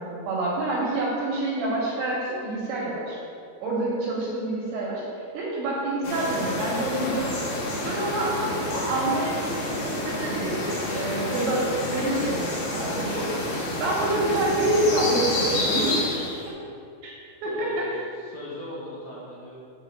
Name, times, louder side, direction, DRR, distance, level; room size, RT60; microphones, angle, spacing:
voice 1, 0.0-3.2 3.6-5.0 5.3-7.4 7.8-10.6 10.9-13.3 13.8-16.0 17.0-17.1 17.4-17.8, right 2 dB, 75° right, -4 dB, 2.8 m, -27 dB
sound 1, 6.0-16.5, left 2 dB, 85° left, 1.8 m, -29 dB
voice 2, 17.4-19.5, left 2 dB, 70° left, -9 dB, 2.5 m, -38 dB
7.1 x 3.7 x 6.5 m, 2.5 s
omnidirectional pair, 5.8 m